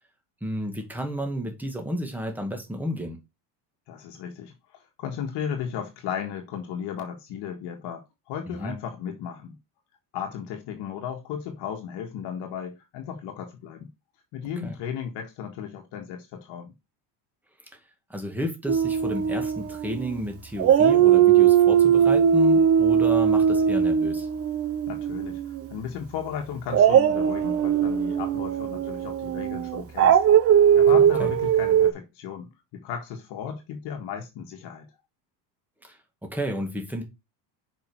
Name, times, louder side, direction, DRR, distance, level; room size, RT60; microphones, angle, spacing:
voice 1, 0.4-3.2 8.5-8.7 14.6-14.7 18.1-24.3 30.9-31.3 35.8-37.0, equal, 5° right, 2.0 m, -32 dB
voice 2, 3.9-9.6 10.1-13.9 14.3-16.7 24.9-30.2 30.5-34.9, left 8 dB, 60° left, 1.7 m, -35 dB
Dog, 18.7-20.2 20.6-25.7 26.7-31.9, right 8 dB, 30° right, 0.6 m, -20 dB
6.0 x 5.4 x 4.6 m
supercardioid pair, 125°, 47 cm